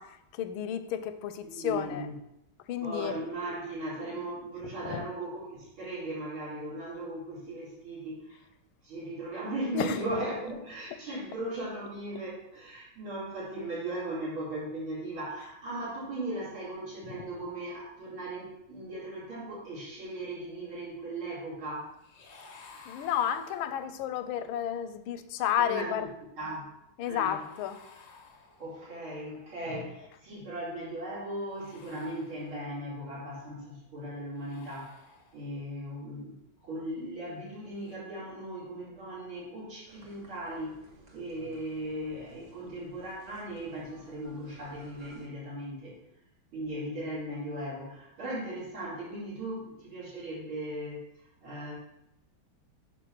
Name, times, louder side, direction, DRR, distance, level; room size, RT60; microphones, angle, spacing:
voice 1, 0.0-2.1 2.7-3.2 4.8-5.0 9.7-10.2 15.4-15.5 17.0-17.3 22.9-26.1 27.0-27.8, left 9 dB, 85° left, 10 dB, 1.4 m, -32 dB
voice 2, 1.5-2.1 2.8-8.4 8.8-21.9 25.6-26.1 26.4-26.7 27.0-27.4 28.6-35.0 35.3-40.8 41.1-46.0 46.5-51.0 51.4-51.7, right 1 dB, 80° right, -8 dB, 3.7 m, -38 dB
sound 1, 22.0-24.1 27.3-29.0 31.4-32.9 34.3-35.7 37.7-38.0, left 4 dB, 60° left, 0.7 m, -54 dB
sound 2, 39.9-45.3, right 3 dB, 40° right, 0.6 m, -55 dB
10.0 x 3.5 x 6.0 m, 0.85 s
omnidirectional pair, 2.3 m